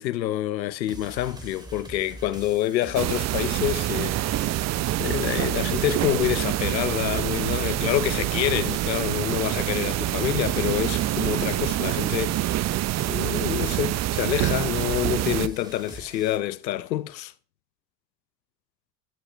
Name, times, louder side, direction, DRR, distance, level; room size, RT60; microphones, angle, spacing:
voice 1, 0.0-4.6 5.0-12.7 13.1-17.3, left 13 dB, 90° left, 0.8 m, -27 dB
sound 1, 0.9-16.4, right 2 dB, 10° right, 3.2 m, -44 dB
sound 2, 2.9-15.5, right 15 dB, 35° right, 0.6 m, -26 dB
12.0 x 11.5 x 3.4 m
hypercardioid pair, 85°, 50 cm